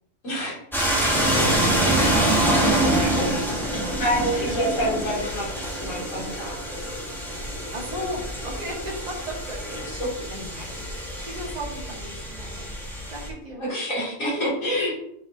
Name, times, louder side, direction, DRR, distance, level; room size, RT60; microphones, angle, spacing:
voice 1, 0.2-0.6 1.3-1.5 3.1-5.5 5.7-6.6 10.0-10.1 10.5-10.6 13.6-14.9, equal, 85° left, -6 dB, 3.0 m, -28 dB
sound 1, 0.7-13.3, right 1 dB, ahead, 1.4 m, -26 dB
voice 2, 1.4-3.0 7.7-9.8 10.3-10.8 11.2-12.8 13.1-13.8 14.2-14.5 14.8-14.9, equal, 30° right, -3 dB, 1.7 m, -36 dB
10.0 x 4.4 x 2.7 m, 0.76 s
omnidirectional pair, 1.3 m